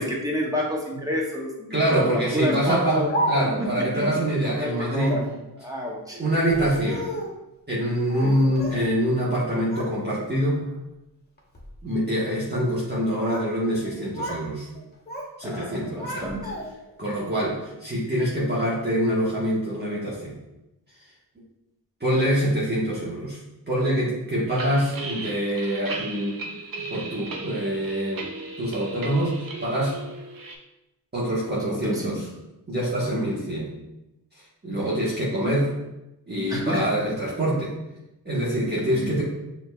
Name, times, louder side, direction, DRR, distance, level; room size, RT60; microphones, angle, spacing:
voice 1, 0.0-3.1 3.6-4.1 4.5-6.2 8.2-8.4 15.4-16.6 31.5-32.2 33.1-33.3 34.8-34.9 36.5-36.9 38.8-39.1, equal, 10° right, -2 dB, 1.3 m, -30 dB
voice 2, 1.7-5.2 6.1-7.2 7.7-10.7 11.8-14.7 15.4-16.3 17.0-20.4 22.0-23.4 23.7-26.4 26.9-28.3 28.6-30.0 31.1-32.3 32.7-33.7 34.6-35.8 36.3-37.8 38.2-39.2, equal, 25° right, -8 dB, 1.3 m, -25 dB
Speech, 2.6-3.7 4.9-5.3 6.3-7.4 8.1-8.9 9.2-9.9 10.3-10.7 11.4-11.7 12.8-13.5 13.8-14.5 14.7-15.3 15.7-16.9, right 1 dB, 25° left, 1.1 m, -33 dB
sound 1, 24.5-30.6, right 3 dB, 60° right, 0.8 m, -36 dB
6.3 x 2.9 x 2.3 m, 0.95 s
cardioid pair, 55°, 39 cm